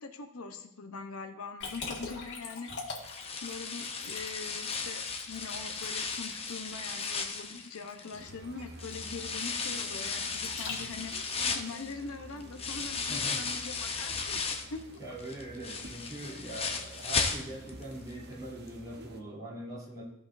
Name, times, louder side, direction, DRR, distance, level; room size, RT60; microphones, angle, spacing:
voice 1, 0.0-2.7 3.4-5.0 5.3-11.1 11.5-14.4 14.7-14.8, left 4 dB, 75° left, 5 dB, 0.9 m, -42 dB
Liquid, 1.6-11.2, left 4 dB, 55° left, 1.8 m, -44 dB
sound 1, 3.0-8.3 8.8-14.8 15.2-17.8 18.1-18.2 18.7-18.8, left 5 dB, 30° left, 0.8 m, -35 dB
sound 2, 8.1-19.2, right 1 dB, 50° right, 0.9 m, -50 dB
voice 2, 13.1-13.4 15.0-20.0, right 1 dB, 20° right, -8 dB, 3.1 m, -42 dB
15.5 x 5.1 x 2.6 m, 0.76 s
head